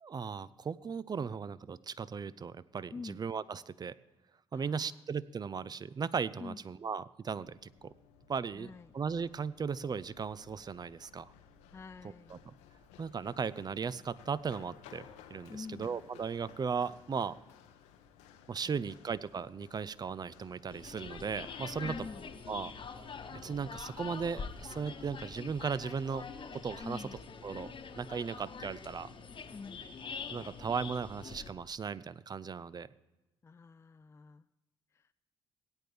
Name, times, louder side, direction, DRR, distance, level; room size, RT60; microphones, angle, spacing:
voice 1, 0.0-3.9 4.5-7.9 8.3-11.3 12.3-12.4 13.0-17.4 18.5-22.1 22.5-22.7 23.3-26.3 26.5-27.1 27.4-29.1 30.3-32.9, right 6 dB, 35° right, 17 dB, 0.5 m, -37 dB
voice 2, 2.9-3.2 4.5-5.0 6.4-6.6 8.5-8.9 11.7-12.4 15.5-16.0 18.7-18.9 21.8-22.3 26.8-27.2 29.5-29.9 33.4-34.5 34.9-35.1, left 4 dB, 20° left, 11 dB, 0.3 m, -46 dB
Run, 7.3-26.4, left 8 dB, 70° left, 0.8 m, -58 dB
sound 1, 20.7-31.5, left 5 dB, 45° left, 1.2 m, -45 dB
17.5 x 9.0 x 3.4 m, 1.0 s
hypercardioid pair, 45°, 12 cm